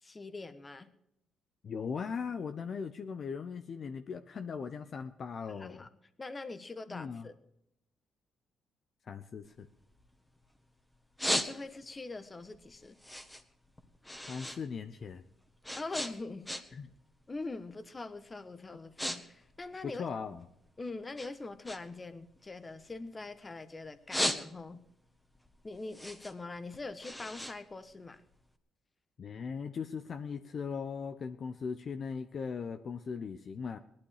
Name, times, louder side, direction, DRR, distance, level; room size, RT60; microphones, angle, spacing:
voice 1, 0.0-0.9 5.5-5.9 6.2-7.3 11.2-13.0 15.7-16.5 17.3-20.1 20.8-24.8 25.6-28.2, left 3 dB, 25° left, 11 dB, 1.4 m, -43 dB
voice 2, 1.6-5.8 6.9-7.3 9.0-9.7 14.3-15.2 16.7-16.9 19.8-20.5 29.2-33.8, left 6 dB, 50° left, 8 dB, 0.9 m, -39 dB
sound 1, 9.4-10.6 10.9-12.0 12.4-14.6 14.9-16.9 17.2-17.6 18.2-18.3 18.6-19.2 19.4-20.7 21.1-23.5 23.9-24.9 25.3-28.4, left 1 dB, 10° left, 1.7 m, -37 dB
18.5 x 12.0 x 4.9 m, 0.80 s
cardioid pair, 90°, 0 cm